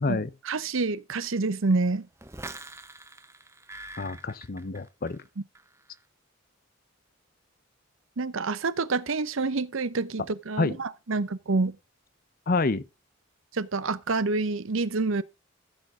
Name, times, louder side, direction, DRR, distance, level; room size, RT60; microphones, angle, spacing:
voice 1, 0.1-2.1 8.2-11.8 13.5-15.2, right 3 dB, 65° right, 0.7 m, -27 dB
sound 1, 2.2-5.3 5.6-6.0, right 2 dB, 10° right, 0.7 m, -44 dB
voice 2, 4.0-5.2 10.6-10.8 12.5-12.8, left 3 dB, 40° left, 0.6 m, -27 dB
14.0 x 7.0 x 3.7 m
head